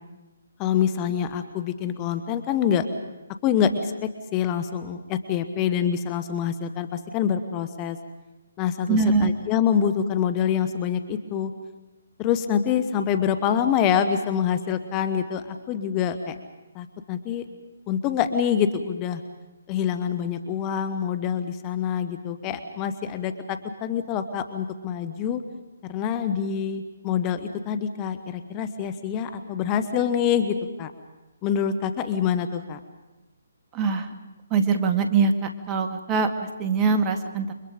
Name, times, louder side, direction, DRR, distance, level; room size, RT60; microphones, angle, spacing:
voice 1, 0.6-2.9 3.4-8.0 8.6-11.5 12.2-16.4 16.7-17.4 17.9-19.2 19.7-25.4 25.9-30.9 31.4-32.8, left 8 dB, 25° left, 10 dB, 1.5 m, -26 dB
voice 2, 8.9-9.3 33.7-34.1 34.5-36.3 36.6-37.5, right 4 dB, 20° right, 7 dB, 2.0 m, -22 dB
29.5 x 24.5 x 5.2 m, 1.1 s
figure-of-eight pair, 140°, 0 cm